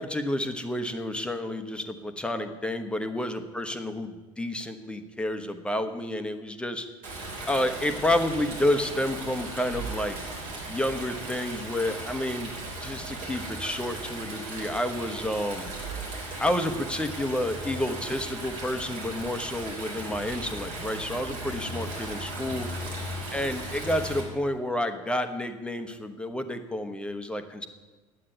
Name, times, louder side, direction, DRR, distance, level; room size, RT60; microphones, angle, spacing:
voice 1, 0.0-6.9 7.5-10.2 10.7-12.5 12.8-15.7 16.4-22.7 23.3-27.7, left 1 dB, 5° left, 8 dB, 1.0 m, -30 dB
Stream, 7.0-24.2, right 2 dB, 50° right, 4.3 m, -37 dB
9.9 x 8.6 x 9.1 m, 1.3 s
figure-of-eight pair, 75°, 17 cm